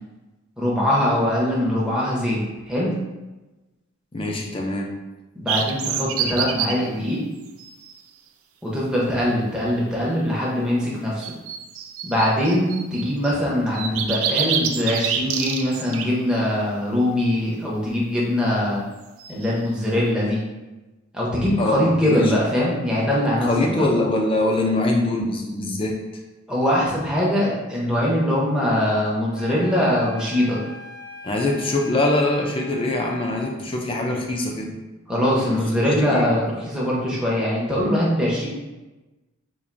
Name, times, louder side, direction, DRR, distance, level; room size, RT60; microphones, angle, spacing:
voice 1, 0.6-2.4 2.7-3.0 5.4-7.2 8.6-11.3 12.0-18.8 19.3-20.4 21.1-23.8 26.5-30.6 35.1-38.5, left 1 dB, 5° right, -6 dB, 0.7 m, -22 dB
voice 2, 4.1-5.0 21.6-22.3 23.4-26.0 31.2-34.8 35.5-36.2, left 2 dB, 25° left, 0 dB, 0.4 m, -23 dB
sound 1, 5.5-6.8 7.6-8.0 11.2-13.4 13.7-16.1 19.2-19.5, right 7 dB, 85° right, 0.4 m, -27 dB
sound 2, 29.3-33.6, left 2 dB, 60° left, 0.7 m, -40 dB
4.4 x 2.6 x 2.5 m, 1.1 s
head